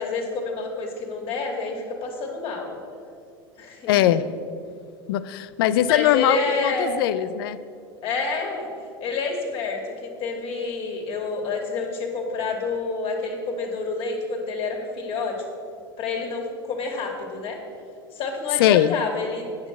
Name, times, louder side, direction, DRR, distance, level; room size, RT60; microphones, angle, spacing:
voice 1, 0.0-2.7 3.6-4.2 5.9-6.9 8.0-8.7 9.0-15.4 16.0-17.6 18.1-19.4, left 4 dB, 45° left, 1 dB, 2.4 m, -28 dB
voice 2, 3.9-4.2 5.1-6.4 6.6-7.6 18.6-19.0, left 12 dB, 70° left, 15 dB, 0.5 m, -20 dB
9.5 x 6.4 x 7.1 m, 2.4 s
hypercardioid pair, 95°, 13 cm